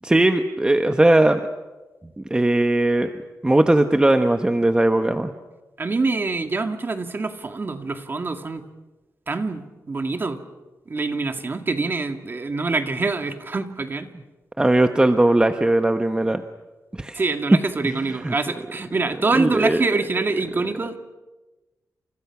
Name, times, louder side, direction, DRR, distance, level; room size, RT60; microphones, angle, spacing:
voice 1, 0.0-1.4 2.2-3.1 3.4-5.3 14.6-16.4 17.0-17.2 18.2-18.3 19.3-19.8, right 1 dB, 15° right, 6 dB, 1.1 m, -18 dB
voice 2, 5.8-8.6 9.3-10.4 10.9-14.1 17.2-21.0, right 3 dB, 35° right, 6 dB, 2.2 m, -25 dB
29.5 x 28.5 x 6.1 m, 1.1 s
wide cardioid pair, 145°, 6 cm